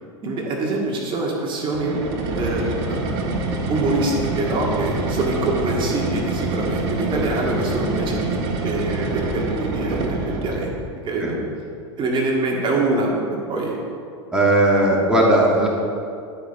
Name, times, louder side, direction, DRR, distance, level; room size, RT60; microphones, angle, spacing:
voice 1, 0.2-1.9 2.3-10.7 11.0-11.4 12.0-13.2 13.5-13.8, right 2 dB, 35° right, -2 dB, 2.0 m, -25 dB
sound 1, 1.7-10.8, right 3 dB, 60° right, 1.7 m, -26 dB
voice 2, 14.3-15.7, right 1 dB, 5° right, -4 dB, 2.0 m, -17 dB
11.5 x 5.9 x 5.5 m, 2.5 s
hypercardioid pair, 100°, 15 cm